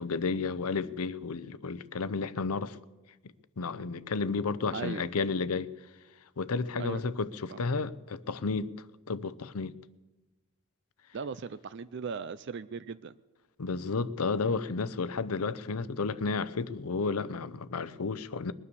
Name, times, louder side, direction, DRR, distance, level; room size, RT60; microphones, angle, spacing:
voice 1, 0.0-2.8 3.6-5.7 6.4-8.7 9.1-9.7 13.6-18.5, left 4 dB, 80° left, 0.7 m, -32 dB
voice 2, 4.7-5.0 6.8-7.0 7.5-7.6 11.1-13.1, right 5 dB, 50° right, 0.4 m, -37 dB
21.0 x 9.9 x 6.9 m
head